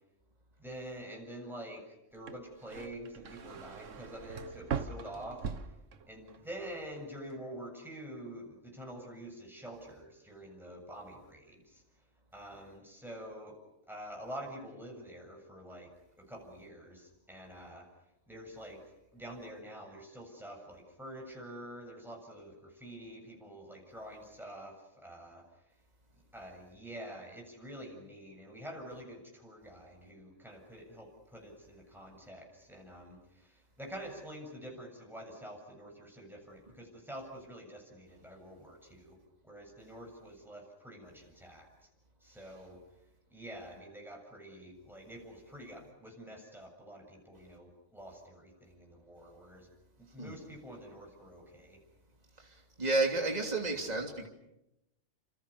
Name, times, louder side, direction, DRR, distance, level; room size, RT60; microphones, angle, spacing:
voice 1, 0.6-5.5 6.1-11.8 12.3-13.6 13.9-17.9 18.3-18.8 19.1-25.4 26.3-39.2 39.4-41.7 42.2-42.8 43.3-49.7 50.0-51.8, right 1 dB, ahead, 1 dB, 7.4 m, -47 dB
sound 1, 2.1-6.4 6.7-7.3, right 6 dB, 90° right, 1.6 m, -41 dB
voice 2, 52.8-54.3, right 3 dB, 35° right, 1 dB, 3.2 m, -31 dB
30.0 x 28.0 x 6.9 m, 0.88 s
omnidirectional pair, 1.2 m